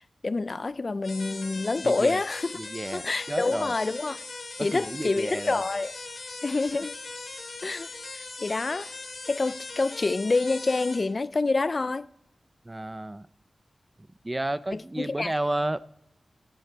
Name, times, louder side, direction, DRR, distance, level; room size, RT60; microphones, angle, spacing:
voice 1, 0.0-2.6 2.9-4.2 4.6-5.9 6.4-6.9 7.6-7.9 8.1-8.9 9.3-12.1 14.7-15.3, left 3 dB, 45° left, 0.4 m, -27 dB
sound 1, 1.0-11.0, left 3 dB, 80° left, 5.6 m, -40 dB
voice 2, 1.8-2.2 2.6-3.7 4.6-5.6 12.6-13.3 14.2-15.9, right 1 dB, 20° right, 0.5 m, -32 dB
18.0 x 9.6 x 4.6 m
wide cardioid pair, 100°, 0 cm